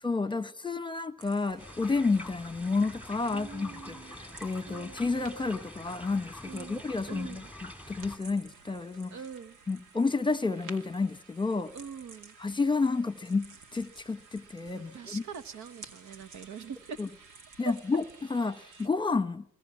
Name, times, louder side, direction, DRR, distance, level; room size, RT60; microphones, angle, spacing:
voice 1, 0.0-9.1 9.7-11.7 12.4-15.2 17.0-17.1 17.6-18.0 18.3-19.4, left 4 dB, 15° left, 1.1 m, -30 dB
sound 1, 1.2-18.9, right 4 dB, 85° right, 2.5 m, -53 dB
sound 2, 1.6-8.2, left 1 dB, 5° right, 2.3 m, -46 dB
voice 2, 3.3-4.3 4.6-5.0 6.5-7.5 9.1-9.6 11.7-12.3 14.7-17.0 17.6-17.7, right 6 dB, 65° right, 1.4 m, -43 dB
25.5 x 21.5 x 8.6 m
cardioid pair, 90°, 30 cm